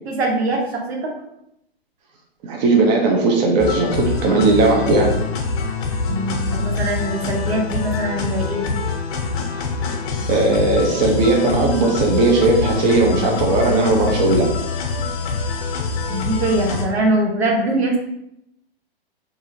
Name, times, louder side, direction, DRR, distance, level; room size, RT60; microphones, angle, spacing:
voice 1, 0.1-1.0 6.1-8.7 16.1-18.0, right 1 dB, 85° right, 0 dB, 0.9 m, -22 dB
voice 2, 2.4-5.1 10.3-14.5, right 3 dB, 45° right, 0 dB, 0.7 m, -17 dB
sound 1, 3.6-16.8, left 4 dB, 50° left, 0.7 m, -25 dB
2.7 x 2.7 x 2.6 m, 0.79 s
hypercardioid pair, 125°, 31 cm